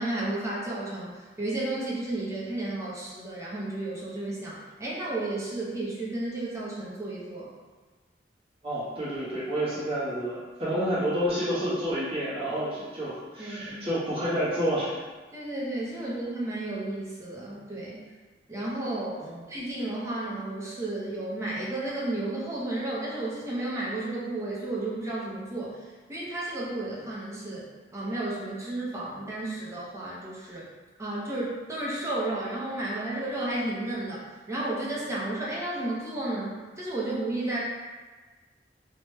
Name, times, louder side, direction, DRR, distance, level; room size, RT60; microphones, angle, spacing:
voice 1, 0.0-7.5 13.4-13.8 15.3-18.0 18.5-30.7 31.0-37.6, right 2 dB, 15° right, -6 dB, 0.6 m, -33 dB
voice 2, 8.6-15.0 19.2-19.4, equal, 35° right, -10 dB, 1.1 m, -29 dB
2.9 x 2.2 x 3.0 m, 1.3 s
head